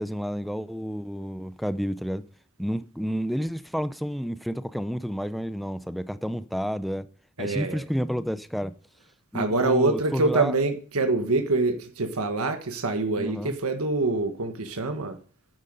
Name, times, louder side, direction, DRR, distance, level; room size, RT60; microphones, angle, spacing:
voice 1, 0.0-2.2 2.6-7.1 7.4-8.7 9.3-10.5 13.2-13.5, equal, ahead, 0.5 m, -30 dB
voice 2, 7.4-7.8 9.3-15.2, right 3 dB, 85° right, 1.5 m, -25 dB
10.5 x 9.6 x 5.3 m
head